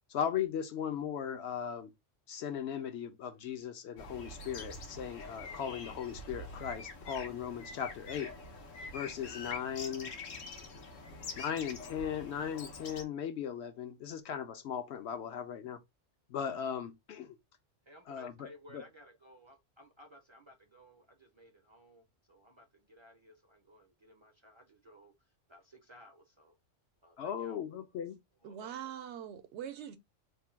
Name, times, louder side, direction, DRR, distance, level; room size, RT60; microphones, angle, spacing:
voice 1, 0.1-1.9 2.3-8.3 8.9-10.1 11.4-15.8 16.3-17.4 18.1-18.8 27.2-28.2, left 8 dB, 65° left, 0.8 m, -38 dB
sound 1, 4.0-13.0, left 3 dB, 85° left, 1.2 m, -45 dB
voice 2, 17.8-26.6 27.0-28.0 28.4-28.9, equal, 35° right, 0.5 m, -58 dB
voice 3, 28.4-30.0, right 10 dB, 70° right, 0.8 m, -43 dB
3.4 x 2.2 x 4.3 m
omnidirectional pair, 1.3 m